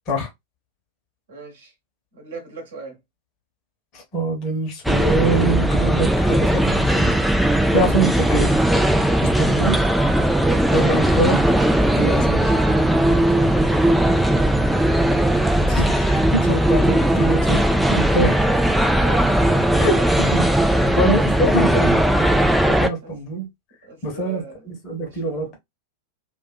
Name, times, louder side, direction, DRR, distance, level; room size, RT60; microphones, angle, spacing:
voice 1, 1.3-1.7 2.1-3.0 13.4-13.8 18.8-19.3 19.9-20.1 20.8-21.2 23.0-23.2 23.8-24.7 25.0-25.5, right 3 dB, 60° right, 1.0 m, -38 dB
voice 2, 3.9-7.1 7.4-8.5 9.4-9.9 10.7-11.4 11.9-12.5 15.7-18.5 19.8-20.4 20.8-23.5 24.0-25.6, right 2 dB, 35° left, 1.0 m, -24 dB
sound 1, 4.8-22.9, right 1 dB, ahead, 0.3 m, -18 dB
2.5 x 2.5 x 2.2 m
figure-of-eight pair, 90°, 0 cm